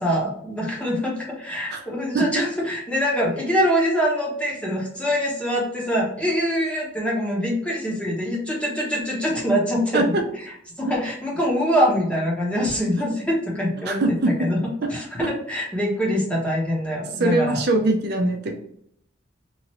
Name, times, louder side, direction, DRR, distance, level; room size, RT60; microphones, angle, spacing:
voice 1, 0.0-10.4 10.8-14.6 14.9-17.6, equal, 5° left, -4 dB, 0.8 m, -24 dB
voice 2, 13.9-14.3 17.2-18.5, right 2 dB, 55° right, 3 dB, 0.4 m, -21 dB
3.0 x 2.4 x 2.9 m, 0.70 s
head